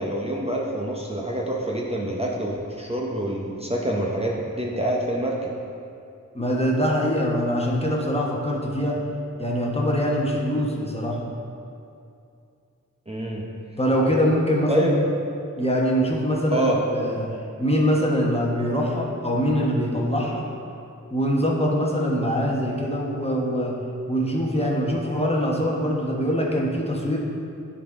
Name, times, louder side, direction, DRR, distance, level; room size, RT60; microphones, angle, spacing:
voice 1, 0.0-5.5 13.1-13.5 14.7-15.0 16.5-16.8, right 1 dB, 20° right, -2 dB, 0.7 m, -26 dB
voice 2, 6.3-9.0 9.4-11.2 13.8-14.9 15.6-17.3 17.6-20.4 21.1-23.8 24.1-27.2, equal, 20° left, -2 dB, 1.0 m, -23 dB
9.9 x 4.1 x 3.6 m, 2.5 s
wide cardioid pair, 65°, 30 cm